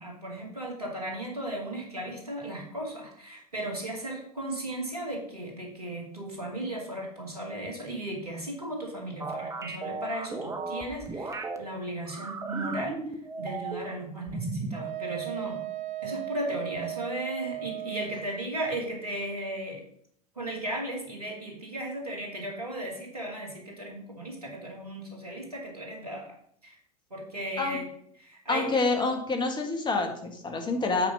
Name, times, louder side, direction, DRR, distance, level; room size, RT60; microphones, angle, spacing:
voice 1, 0.0-13.0 13.4-15.6 16.0-19.8 20.4-26.4 26.6-26.8 27.1-27.8 28.2-28.7, right 1 dB, 85° right, 0 dB, 2.4 m, -36 dB
sound 1, 9.2-11.6 12.1-13.9 14.3-14.8, right 3 dB, 15° right, 1.1 m, -35 dB
Wind instrument woodwind instrument, 14.7-18.3, right 15 dB, 45° right, 0.9 m, -36 dB
voice 2, 28.5-31.1, left 3 dB, 25° left, 5 dB, 1.7 m, -27 dB
8.5 x 5.0 x 5.6 m, 0.65 s
figure-of-eight pair, 80°, 19 cm